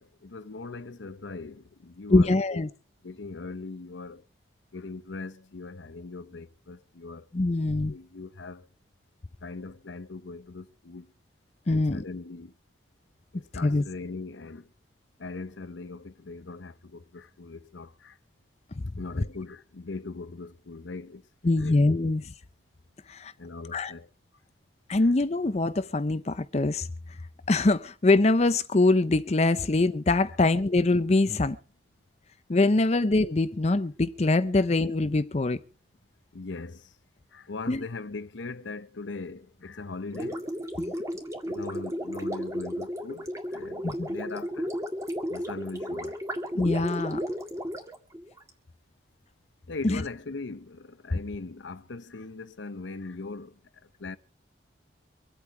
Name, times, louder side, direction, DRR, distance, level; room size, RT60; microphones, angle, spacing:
voice 1, 0.0-2.6 3.0-4.2 4.7-7.3 7.9-8.7 9.4-11.1 11.7-12.5 13.3-14.7 15.2-18.2 19.0-22.1 23.4-24.1 36.3-37.0 37.3-40.5 41.4-44.7 45.3-46.2 49.7-54.2, left 3 dB, 85° left, 0.8 m, -40 dB
voice 2, 2.1-2.7 7.3-7.9 11.7-12.0 13.6-13.8 18.7-18.8 21.4-22.2 23.1-23.3 23.7-23.9 24.9-26.9 27.5-31.6 32.5-35.6 37.7-37.8 40.8-40.9 43.8-44.1 46.5-47.2 49.8-50.0, left 2 dB, 35° left, 0.6 m, -23 dB
Gurgling, 40.1-48.5, equal, 15° right, 1.9 m, -33 dB
25.0 x 8.5 x 4.5 m
head